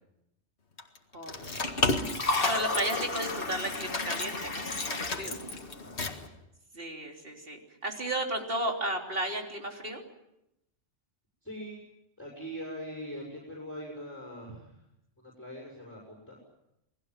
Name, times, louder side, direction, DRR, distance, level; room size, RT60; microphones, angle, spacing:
sound 1, 0.8-4.4 4.7-6.3, left 3 dB, 65° left, 2.2 m, -37 dB
voice 1, 1.1-1.8 2.5-5.4 6.7-10.0, right 1 dB, 50° right, 2 dB, 3.7 m, -34 dB
Liquid, 1.3-6.3, left 3 dB, 50° left, 1.9 m, -32 dB
voice 2, 5.1-6.0 11.4-11.8 12.2-14.8 15.2-16.4, equal, 10° left, -3 dB, 6.1 m, -42 dB
28.5 x 19.5 x 7.5 m, 0.85 s
omnidirectional pair, 1.2 m